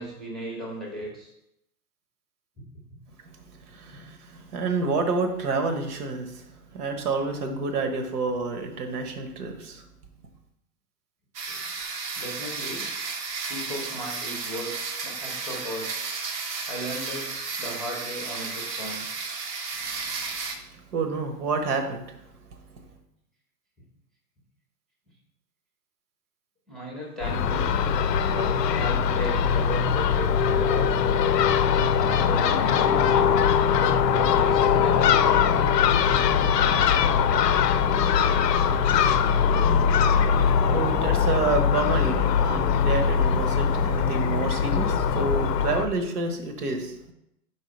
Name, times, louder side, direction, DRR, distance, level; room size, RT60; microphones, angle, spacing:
voice 1, 0.0-1.3 2.6-2.7 11.5-11.6 12.1-12.8 13.5-16.0 16.7-17.3 17.6-19.2 26.7-27.7 28.3-31.3 32.1-35.2, equal, ahead, -2 dB, 0.8 m, -36 dB
voice 2, 3.3-6.4 6.7-9.8 20.6-20.7 20.9-22.2 40.2-47.1, right 3 dB, 70° right, 6 dB, 1.2 m, -29 dB
sound 1, 11.3-20.6, right 4 dB, 85° right, 1.2 m, -33 dB
Crow / Gull seagull, 27.2-45.8, left 7 dB, 90° left, 0.6 m, -21 dB
4.6 x 4.0 x 5.3 m, 0.82 s
hypercardioid pair, 145°, 47 cm